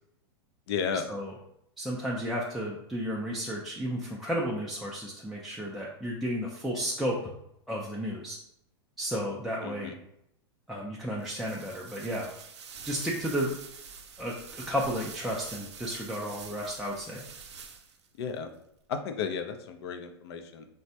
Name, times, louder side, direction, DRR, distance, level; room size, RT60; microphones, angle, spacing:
voice 1, 0.7-1.1 9.6-10.0 18.2-18.5 18.9-20.7, left 6 dB, 65° left, 7 dB, 0.4 m, -33 dB
voice 2, 1.8-7.3 7.7-8.4 9.0-9.9 10.7-12.3 12.8-13.6 14.2-17.2, equal, ahead, -5 dB, 0.3 m, -33 dB
sound 1, 11.2-18.1, right 6 dB, 80° right, 0.5 m, -46 dB
3.3 x 2.1 x 2.7 m, 0.78 s
hypercardioid pair, 115°, 14 cm